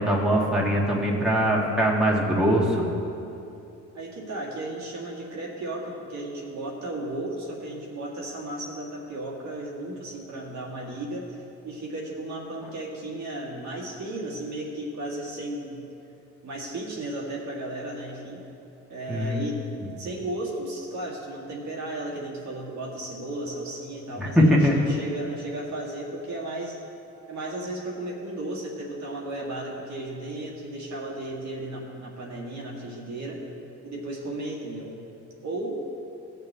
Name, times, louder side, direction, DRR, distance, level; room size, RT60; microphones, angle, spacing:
voice 1, 0.0-2.8 19.1-19.5 24.2-24.7, equal, 5° right, -3 dB, 1.7 m, -22 dB
voice 2, 3.9-11.4 11.6-15.8 16.4-18.4 18.9-26.8 27.3-33.4 33.8-35.0 35.4-35.8, right 1 dB, 70° right, -3 dB, 2.0 m, -34 dB
16.0 x 7.0 x 3.4 m, 2.7 s
cardioid pair, 90°, 30 cm